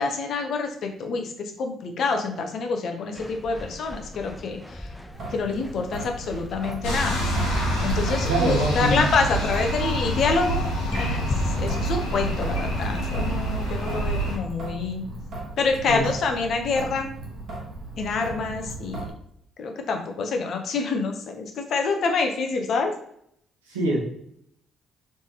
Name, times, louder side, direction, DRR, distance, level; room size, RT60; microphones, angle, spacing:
voice 1, 0.0-4.9 5.3-7.2 7.8-15.0 15.6-17.1 18.0-19.0 19.6-22.9, left 4 dB, 60° left, 4 dB, 0.6 m, -27 dB
sound 1, 3.1-13.5, left 1 dB, 5° left, 0.4 m, -37 dB
Traffic noise roadway noise / Drip / Trickle dribble, 5.1-19.1, right 2 dB, 60° right, 1.0 m, -37 dB
sound 2, 6.8-14.4, right 1 dB, 85° left, 0.9 m, -27 dB
voice 2, 8.3-9.0 15.9-16.1 23.7-24.0, right 1 dB, 85° right, -3 dB, 0.9 m, -24 dB
3.2 x 3.2 x 2.8 m, 0.70 s
hypercardioid pair, 45°, 0 cm